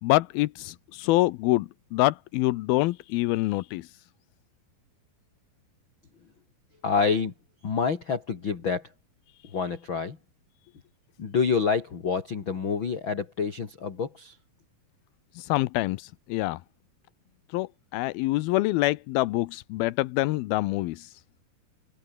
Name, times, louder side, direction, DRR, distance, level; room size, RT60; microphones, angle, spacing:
voice 1, 0.0-3.9 15.4-16.6 17.5-21.1, left 19 dB, 85° left, 2.6 m, -26 dB
voice 2, 6.8-7.3 7.6-8.9 9.5-10.2 11.2-14.4, left 5 dB, 35° left, 2.8 m, -27 dB
omnidirectional pair, 4.3 m